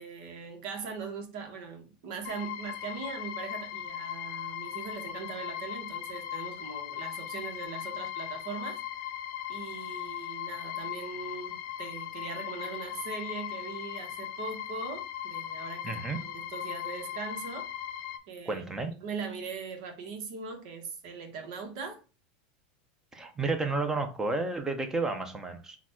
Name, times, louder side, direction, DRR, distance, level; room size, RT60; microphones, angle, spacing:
voice 1, 0.0-9.1 9.5-17.7 18.3-22.0, right 5 dB, 65° right, 1.2 m, -40 dB
sound 1, 2.2-18.2, left 11 dB, 55° left, 0.5 m, -38 dB
voice 2, 15.8-16.2 18.5-18.9 23.1-25.8, right 3 dB, 10° right, 0.7 m, -31 dB
4.0 x 2.4 x 4.4 m
supercardioid pair, 130°, 5 cm